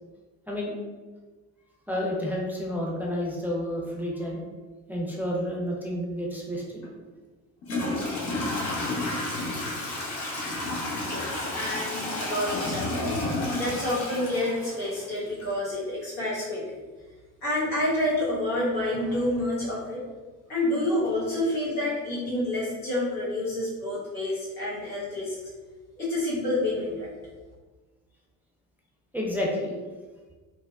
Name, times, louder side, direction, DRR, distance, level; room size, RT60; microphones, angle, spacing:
voice 1, 0.5-0.8 1.9-4.4 4.9-6.9 29.1-29.7, equal, 5° right, -3 dB, 0.5 m, -30 dB
Toilet flush / Trickle dribble, 6.8-6.9 7.6-15.4, left 2 dB, 70° left, 0.9 m, -31 dB
voice 2, 11.1-16.6 17.4-20.0 20.5-25.3 26.0-27.1, left 1 dB, 90° left, -9 dB, 1.2 m, -28 dB
3.3 x 2.1 x 2.3 m, 1.3 s
hypercardioid pair, 60°, 41 cm